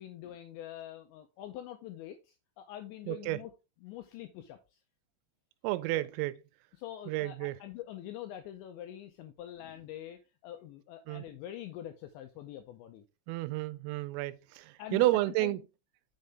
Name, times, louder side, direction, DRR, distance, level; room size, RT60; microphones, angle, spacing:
voice 1, 0.0-3.5 3.8-4.8 5.9-6.1 6.8-13.0 14.8-15.6, left 12 dB, 90° left, 2.6 m, -45 dB
voice 2, 3.1-3.4 5.6-6.3 7.1-7.6 11.1-11.2 13.3-15.6, right 18 dB, 90° right, 3.3 m, -31 dB
6.7 x 6.6 x 3.4 m
omnidirectional pair, 5.9 m